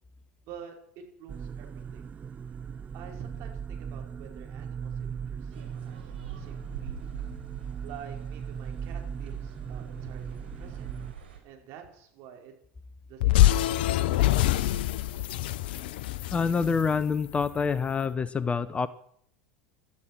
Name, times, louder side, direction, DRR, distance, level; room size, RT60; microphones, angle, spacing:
voice 1, 0.4-2.1 2.9-7.1 7.8-10.9 11.4-12.5 13.0-14.5, right 8 dB, 55° right, 2 dB, 5.1 m, -48 dB
sound 1, 1.3-11.1, right 7 dB, 25° right, 0.7 m, -38 dB
sound 2, 5.5-11.4, right 8 dB, 80° right, 4.2 m, -46 dB
sound 3, 13.2-17.6, left 15 dB, 65° left, 0.8 m, -25 dB
voice 2, 16.3-18.9, left 5 dB, 20° left, 17 dB, 0.8 m, -26 dB
18.0 x 13.0 x 6.1 m, 0.68 s
hypercardioid pair, 80°, 6 cm